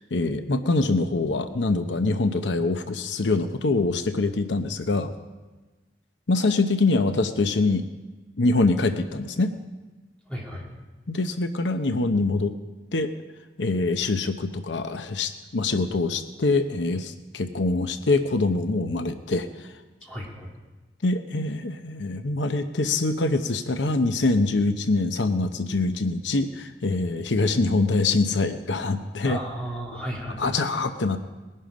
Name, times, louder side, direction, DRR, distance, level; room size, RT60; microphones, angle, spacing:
voice 1, 0.0-5.1 6.3-7.8 8.4-9.5 11.1-12.6 12.9-13.1 13.6-19.5 21.0-29.4 30.4-31.2, left 3 dB, 90° left, 9 dB, 0.8 m, -24 dB
voice 2, 10.3-10.6 20.0-20.5 29.2-30.6, equal, 5° left, -3 dB, 2.9 m, -34 dB
20.0 x 11.0 x 5.1 m, 1.2 s
head